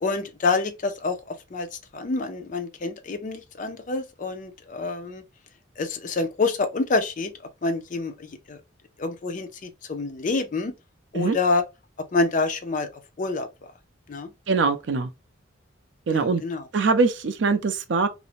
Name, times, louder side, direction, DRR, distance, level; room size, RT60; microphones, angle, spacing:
voice 1, 0.0-5.2 5.8-7.3 7.6-8.6 9.0-10.7 11.1-11.6 12.1-12.9 13.2-13.5 14.1-14.3 16.1-16.7, left 3 dB, 40° left, 0.4 m, -27 dB
voice 2, 14.5-15.1 16.1-16.4 16.7-18.1, right 4 dB, 65° right, 0.4 m, -22 dB
2.5 x 2.0 x 2.7 m
head